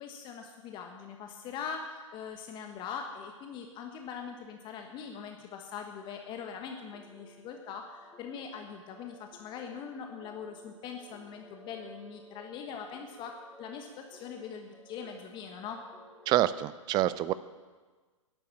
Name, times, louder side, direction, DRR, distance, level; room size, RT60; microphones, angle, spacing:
voice 1, 0.0-15.8, left 6 dB, 30° left, 4 dB, 1.3 m, -42 dB
sound 1, 6.9-16.5, right 1 dB, 5° left, 1.2 m, -56 dB
voice 2, 16.3-17.3, right 14 dB, 25° right, 16 dB, 0.5 m, -27 dB
12.0 x 11.0 x 7.5 m, 1.4 s
figure-of-eight pair, 115°, 17 cm